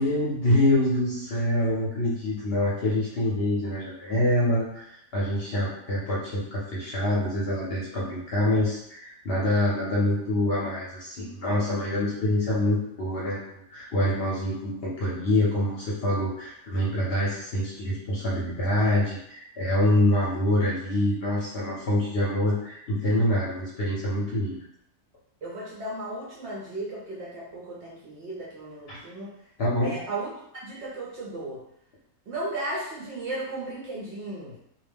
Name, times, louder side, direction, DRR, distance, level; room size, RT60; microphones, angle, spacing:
voice 1, 0.0-24.6 28.9-29.0 29.6-29.9, left 1 dB, 55° left, -6 dB, 0.7 m, -26 dB
voice 2, 25.4-29.4 29.8-30.3 30.6-31.6 32.3-34.6, right 2 dB, 65° right, -5 dB, 0.7 m, -35 dB
2.3 x 2.2 x 3.3 m, 0.75 s
omnidirectional pair, 1.5 m